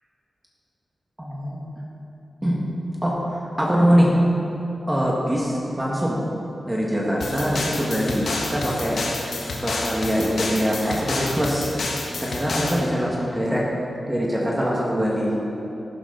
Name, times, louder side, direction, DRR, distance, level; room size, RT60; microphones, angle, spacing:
voice 1, 1.2-1.8 2.4-2.6 3.0-4.1 4.9-6.2 6.7-9.0 9.6-11.7 12.2-13.7 14.1-15.4, equal, 10° right, -4 dB, 1.9 m, -23 dB
sound 1, 7.2-12.8, left 2 dB, 90° left, 1.6 m, -29 dB
14.5 x 12.0 x 4.1 m, 3.0 s
wide cardioid pair, 115°, 0 cm